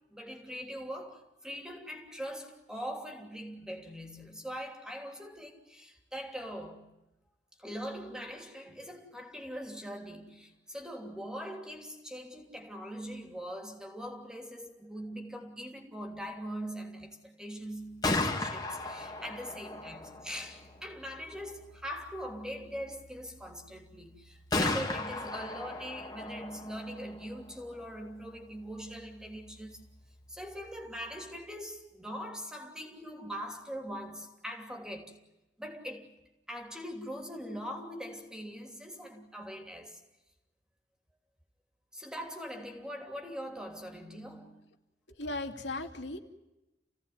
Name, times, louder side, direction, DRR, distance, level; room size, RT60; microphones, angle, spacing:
voice 1, 0.0-7.0 7.6-29.8 30.3-35.2 35.6-36.1 36.5-40.0 41.9-44.7, equal, 5° right, 3.0 m, -42 dB
Gunshot gunfire, 17.8-31.6, left 2 dB, 20° left, 2.5 m, -38 dB
voice 2, 45.2-46.2, left 2 dB, 85° left, 2.7 m, -36 dB
29.5 x 17.0 x 9.6 m
head